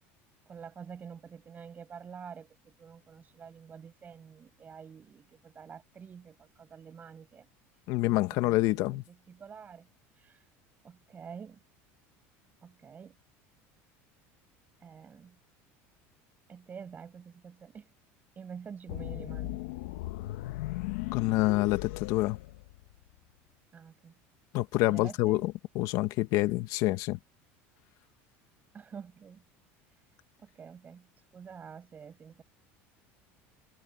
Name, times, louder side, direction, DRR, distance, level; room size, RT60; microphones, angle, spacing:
voice 1, 0.5-7.5 8.0-9.9 10.1-10.5 10.8-11.6 12.6-13.2 14.8-15.4 16.5-17.9 18.3-19.6 23.7-24.1 24.9-25.4 28.7-29.4 29.9-30.0 30.4-32.4, right 6 dB, 25° right, 7.8 m, -48 dB
voice 2, 7.9-9.0 21.1-22.4 24.5-27.2, left 18 dB, 65° left, 1.6 m, -27 dB
sound 1, 18.9-23.1, left 18 dB, 85° left, 1.2 m, -38 dB
supercardioid pair, 130°, 6 cm